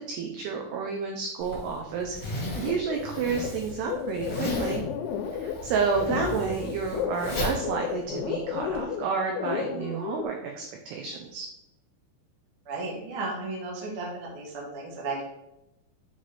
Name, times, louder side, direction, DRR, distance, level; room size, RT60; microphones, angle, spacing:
voice 1, 0.0-4.8 5.4-11.5, right 5 dB, 90° right, 2 dB, 2.3 m, -30 dB
Zipper (clothing), 1.4-8.8, left 2 dB, 45° left, 1.5 m, -36 dB
sound 1, 2.6-10.2, left 8 dB, 80° left, 2.9 m, -32 dB
voice 2, 12.6-15.2, right 3 dB, 75° right, -3 dB, 1.2 m, -34 dB
9.7 x 3.4 x 4.1 m, 0.88 s
omnidirectional pair, 5.6 m